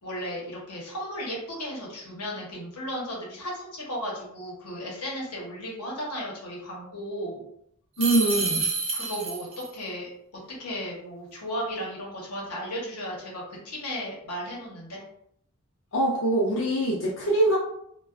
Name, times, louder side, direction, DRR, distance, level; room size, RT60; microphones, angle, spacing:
voice 1, 0.0-7.4 8.9-9.5 9.7-10.1 10.6-15.0, equal, 90° left, -3 dB, 0.9 m, -35 dB
voice 2, 8.0-8.7 15.9-17.6, right 1 dB, 60° left, -5 dB, 0.5 m, -23 dB
sound 1, 8.0-9.7, right 4 dB, 25° right, 0.4 m, -28 dB
2.3 x 2.2 x 2.4 m, 0.72 s
head